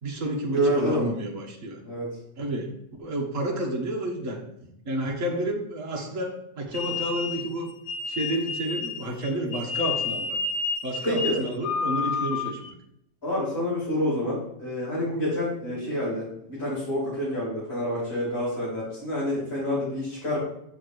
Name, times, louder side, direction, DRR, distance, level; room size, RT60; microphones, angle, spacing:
voice 1, 0.0-1.8 2.4-2.7 3.0-4.4 4.9-7.7 8.1-10.4 10.8-12.7, right 1 dB, 45° right, 0 dB, 1.9 m, -30 dB
voice 2, 0.5-1.2 1.8-2.2 11.0-11.4 13.2-20.4, equal, 30° left, -10 dB, 4.3 m, -28 dB
sound 1, 6.7-12.7, left 4 dB, 50° left, 1.0 m, -30 dB
7.8 x 6.7 x 4.7 m, 0.76 s
omnidirectional pair, 1.9 m